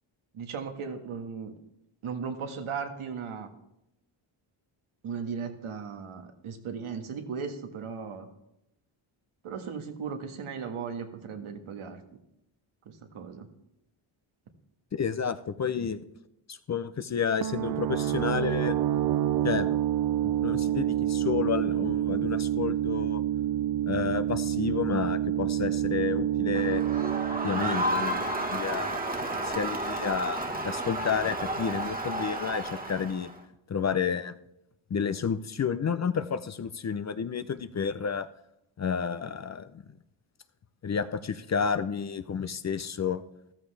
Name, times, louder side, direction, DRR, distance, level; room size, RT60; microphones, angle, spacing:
voice 1, 0.3-1.5 2.0-3.5 5.0-8.3 9.4-12.0 12.8-13.5, right 6 dB, 80° right, 5 dB, 1.6 m, -37 dB
voice 2, 14.9-16.0 16.5-18.8 19.4-19.8 20.2-23.2 23.9-26.8 27.4-33.3 33.7-34.3 34.9-38.3 38.8-39.7 40.8-43.2, left 6 dB, 35° left, 12 dB, 0.6 m, -31 dB
sound 1, 17.4-28.9, right 12 dB, 50° right, 0.4 m, -28 dB
Crowd, 26.5-33.4, right 1 dB, 15° right, 1.4 m, -32 dB
14.0 x 13.0 x 3.3 m, 0.84 s
cardioid pair, 85°, 49 cm